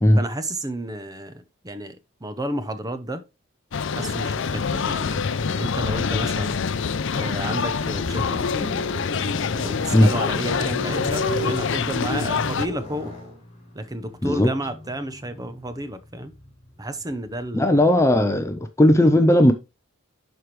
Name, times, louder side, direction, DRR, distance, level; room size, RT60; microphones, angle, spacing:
voice 1, 0.2-3.2 3.9-5.3 5.6-6.6 7.1-8.7 9.2-13.1 13.7-16.3 16.8-17.9, right 1 dB, 20° right, 0.8 m, -31 dB
sound 1, 3.7-12.7, left 5 dB, 60° left, 0.5 m, -25 dB
sound 2, 7.9-17.5, equal, 30° left, 4.2 m, -36 dB
voice 2, 17.5-19.5, left 1 dB, 15° left, 0.5 m, -16 dB
11.0 x 4.6 x 3.1 m
head